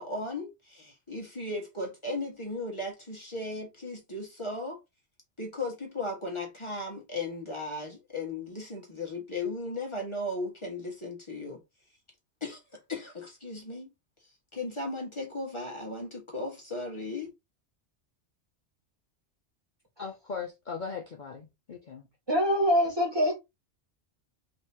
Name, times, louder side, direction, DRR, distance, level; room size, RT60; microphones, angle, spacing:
voice 1, 0.0-4.8 5.4-11.6 12.4-12.6 12.9-13.9 14.5-17.3, left 2 dB, 25° left, 1.6 m, -36 dB
voice 2, 20.0-22.1, left 5 dB, 45° left, 0.9 m, -39 dB
voice 3, 22.3-23.3, equal, 20° right, 1.9 m, -24 dB
5.1 x 3.6 x 2.8 m
omnidirectional pair, 1.2 m